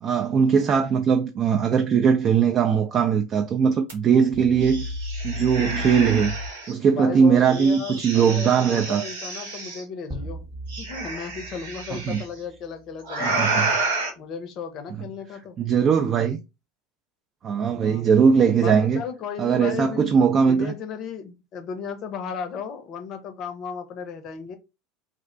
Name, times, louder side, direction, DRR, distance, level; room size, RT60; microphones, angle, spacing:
voice 1, 0.0-6.3 6.7-9.0 12.1-12.2 13.2-13.7 15.6-16.4 17.4-19.0 19.4-20.7, right 6 dB, 40° right, 0.3 m, -20 dB
sound 1, 3.9-4.0 4.3-6.7 7.5-9.8 10.7-12.2 13.0-14.1, right 2 dB, 75° right, 0.9 m, -29 dB
voice 2, 6.9-10.5 10.8-13.5 14.2-15.6 17.8-18.0 18.5-20.1 20.5-24.5, left 6 dB, 50° left, 0.6 m, -35 dB
sound 2, 10.1-12.9, right 1 dB, 15° right, 0.7 m, -39 dB
2.4 x 2.1 x 2.5 m
hypercardioid pair, 80°, 0 cm